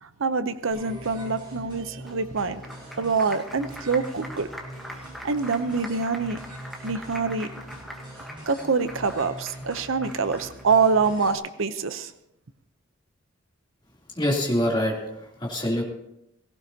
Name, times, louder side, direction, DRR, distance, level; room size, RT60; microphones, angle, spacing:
voice 1, 0.0-2.6 3.0-4.5 5.2-6.4 6.8-7.5 8.5-12.1, right 4 dB, 70° right, 11 dB, 0.7 m, -25 dB
sound 1, 0.7-11.4, right 1 dB, 25° right, 6.5 m, -42 dB
Applause, 2.1-10.8, equal, ahead, 1.2 m, -43 dB
voice 2, 14.2-15.8, left 1 dB, 20° left, -3 dB, 3.1 m, -25 dB
18.0 x 16.5 x 2.9 m, 0.82 s
head